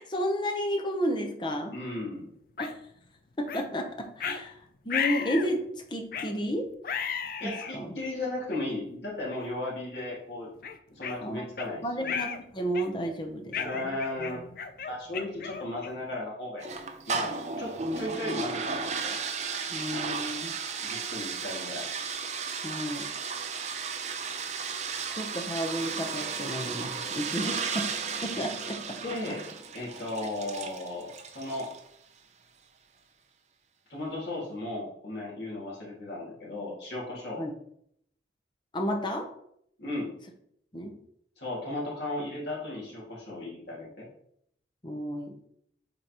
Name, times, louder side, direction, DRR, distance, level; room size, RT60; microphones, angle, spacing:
voice 1, 0.0-1.8 2.6-2.7 3.4-6.7 7.4-7.9 11.2-11.5 11.8-13.6 13.8-13.9 14.2-14.5 17.8-18.4 19.7-20.6 22.6-23.1 25.1-27.9 28.2-29.0 29.3-29.4 37.4-37.5 38.7-39.3 40.7-41.0 44.8-45.4, equal, 25° left, 3 dB, 0.8 m, -32 dB
voice 2, 1.7-2.3 7.4-10.5 10.9-12.2 13.5-14.4 14.8-16.8 17.1-17.3 17.6-19.2 20.8-21.9 26.5-26.7 29.0-29.5 29.7-31.7 33.9-37.4 39.8-40.1 41.4-44.1, left 1 dB, 70° left, -5 dB, 2.2 m, -35 dB
sound 1, 2.6-2.7 3.5-3.7 4.2-4.4 4.9-5.5 6.1-6.3 6.8-7.8 8.5-8.6 9.3-9.5 9.9-10.1 10.6-11.7 12.0-12.4 12.7-13.1 13.5-16.1, left 7 dB, 50° left, 0.5 m, -34 dB
sound 2, 16.6-31.9, right 5 dB, 40° right, 0.6 m, -34 dB
8.0 x 4.0 x 3.0 m, 0.70 s
head